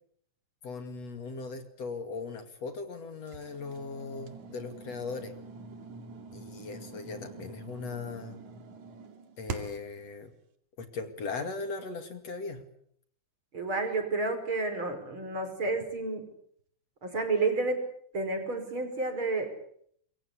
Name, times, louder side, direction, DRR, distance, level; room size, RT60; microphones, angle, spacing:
voice 1, 0.6-5.3 6.3-8.4 9.4-10.3 10.8-12.6, left 4 dB, 55° left, 7 dB, 3.4 m, -38 dB
sound 1, 3.3-9.9, right 4 dB, 70° right, 3.5 m, -44 dB
voice 2, 13.5-16.3 17.0-17.8 18.1-19.5, right 3 dB, 40° right, 6 dB, 6.0 m, -30 dB
26.0 x 23.5 x 8.4 m, 0.67 s
omnidirectional pair, 3.5 m